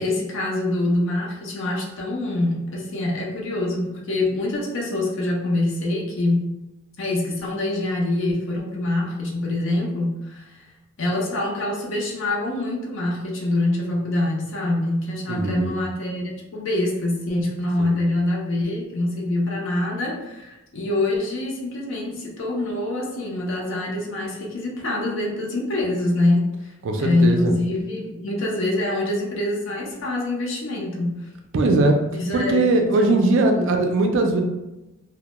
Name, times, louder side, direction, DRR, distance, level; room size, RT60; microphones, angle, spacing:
voice 1, 0.0-6.5 7.0-10.6 11.0-26.7 27.0-31.3 32.1-32.6 33.0-33.2 33.5-33.7, left 2 dB, 55° left, -2 dB, 0.5 m, -25 dB
voice 2, 15.3-15.7 17.8-18.0 26.8-27.5 31.5-32.0 32.3-34.4, right 2 dB, 55° right, 3 dB, 0.3 m, -20 dB
2.1 x 2.0 x 2.9 m, 1.0 s
head